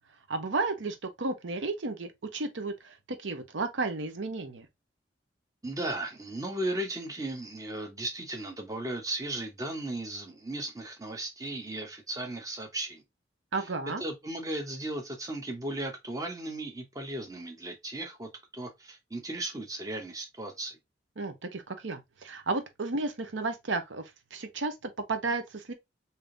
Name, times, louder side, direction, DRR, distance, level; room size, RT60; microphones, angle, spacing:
voice 1, 0.3-4.7 13.5-14.0 21.2-25.7, right 3 dB, 90° right, 0.8 m, -33 dB
voice 2, 5.6-13.0 14.0-20.8, right 1 dB, 20° right, 0.9 m, -36 dB
3.5 x 2.8 x 3.7 m
head